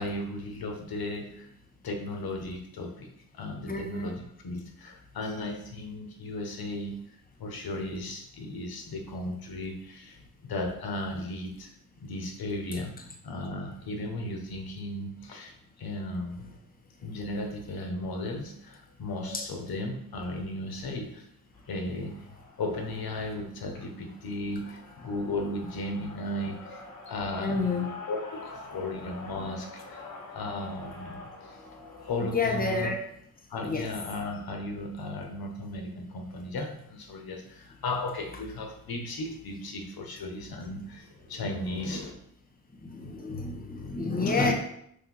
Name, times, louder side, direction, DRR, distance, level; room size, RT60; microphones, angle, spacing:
voice 1, 0.0-1.5 1.8-11.7 12.0-12.9 13.2-15.5 15.8-16.5 17.0-21.2 21.7-22.2 22.6-27.7 28.1-31.6 32.0-32.9 33.5-42.1 44.3-44.5, left 2 dB, 85° left, 2 dB, 1.2 m, -35 dB
voice 2, 3.7-4.1 19.2-19.5 27.4-27.9 32.2-33.0 33.6-33.9 42.8-44.5, left 3 dB, 25° left, 1 dB, 1.1 m, -29 dB
sound 1, 21.5-32.9, left 3 dB, 70° left, 2.0 m, -47 dB
6.7 x 2.6 x 5.6 m, 0.71 s
wide cardioid pair, 110°, 36 cm